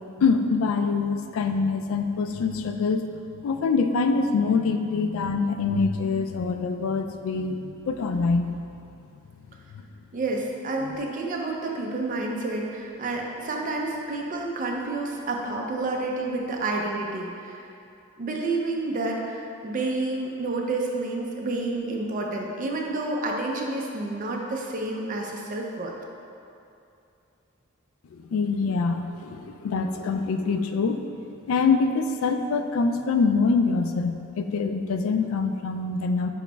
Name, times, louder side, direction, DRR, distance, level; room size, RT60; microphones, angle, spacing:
voice 1, 0.2-3.1 3.4-8.5 28.1-31.0 31.5-36.3, left 4 dB, 90° left, 8 dB, 0.3 m, -24 dB
voice 2, 10.1-17.6 18.2-25.9, right 2 dB, 40° right, 0 dB, 0.5 m, -29 dB
5.0 x 3.0 x 3.3 m, 2.6 s
head